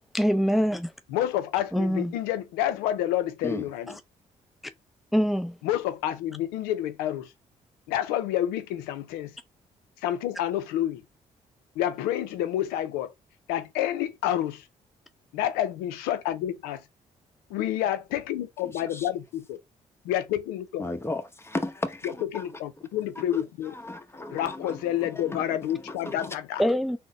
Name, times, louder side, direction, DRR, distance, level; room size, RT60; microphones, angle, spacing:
voice 1, 0.1-0.9 1.7-2.1 3.9-4.0 5.1-5.6 26.6-27.0, equal, ahead, 0.4 m, -24 dB
voice 2, 1.1-3.9 5.6-7.3 7.9-9.3 10.0-11.0 11.8-13.1 13.5-14.6 15.3-16.8 17.5-19.6 20.0-20.8 22.2-23.7 24.3-26.6, left 12 dB, 90° left, 0.4 m, -29 dB
voice 3, 20.8-22.5 23.2-25.4 25.7-26.3, left 2 dB, 15° left, 0.9 m, -35 dB
3.8 x 2.1 x 3.9 m
supercardioid pair, 55°, 15 cm